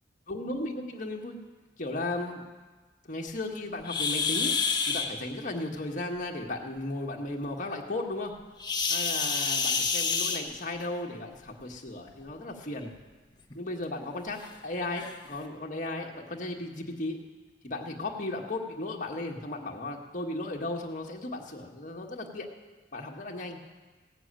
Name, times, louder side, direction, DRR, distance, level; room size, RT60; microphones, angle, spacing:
voice 1, 0.3-1.4 1.8-2.4 3.0-4.6 4.8-8.4 8.9-12.9 13.5-17.2 17.6-22.5 22.9-23.6, left 2 dB, 50° left, 0 dB, 1.6 m, -35 dB
sound 1, 3.8-5.1 8.6-10.8 12.1-12.3 12.8-12.9 13.5-13.6 14.4-14.5 15.0-15.2, left 5 dB, 25° left, 1.3 m, -28 dB
16.5 x 6.9 x 8.9 m, 1.3 s
head